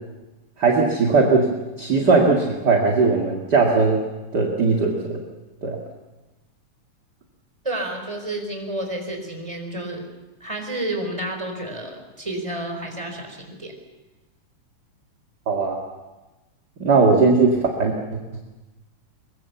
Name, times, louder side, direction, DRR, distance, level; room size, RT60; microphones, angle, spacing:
voice 1, 0.6-1.5 1.8-4.0 4.3-5.2 5.6-5.8 15.5-15.8 16.8-18.0, right 4 dB, 35° right, 0 dB, 2.5 m, -18 dB
voice 2, 7.6-10.0 10.4-13.7, right 1 dB, 10° right, 3 dB, 4.4 m, -30 dB
23.0 x 23.0 x 7.1 m, 1.1 s
omnidirectional pair, 3.4 m